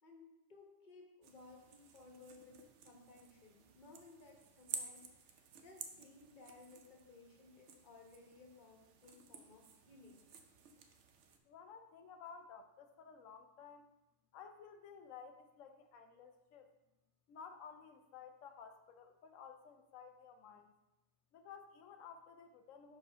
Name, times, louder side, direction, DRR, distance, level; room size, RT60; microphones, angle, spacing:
voice 1, 0.0-10.2, left 3 dB, 40° left, 0 dB, 1.2 m, -60 dB
sound 1, 1.2-11.4, right 6 dB, 70° right, 1.0 m, -53 dB
voice 2, 11.5-13.9 14.3-16.7 17.3-20.7 21.3-23.0, left 6 dB, 85° left, 6 dB, 1.0 m, -55 dB
4.9 x 4.8 x 5.5 m, 0.97 s
omnidirectional pair, 1.3 m